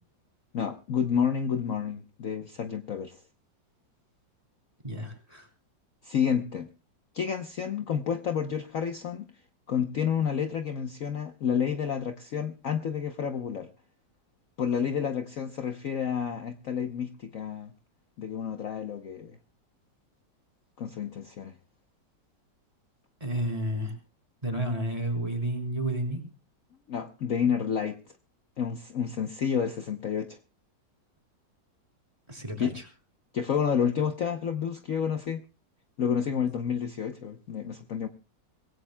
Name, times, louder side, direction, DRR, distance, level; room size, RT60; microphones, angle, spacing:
voice 1, 0.5-3.2 6.0-6.7 7.1-9.3 9.7-13.7 14.6-17.7 18.2-19.4 20.8-21.5 26.9-28.0 28.6-30.4 32.6-32.7 33.3-35.4 36.0-38.1, left 7 dB, 55° left, 7 dB, 1.1 m, -30 dB
voice 2, 4.8-5.5 23.2-23.9 24.4-26.2 32.3-32.8, right 1 dB, 20° right, 3 dB, 3.5 m, -31 dB
25.0 x 17.5 x 2.2 m, 0.33 s
omnidirectional pair, 2.0 m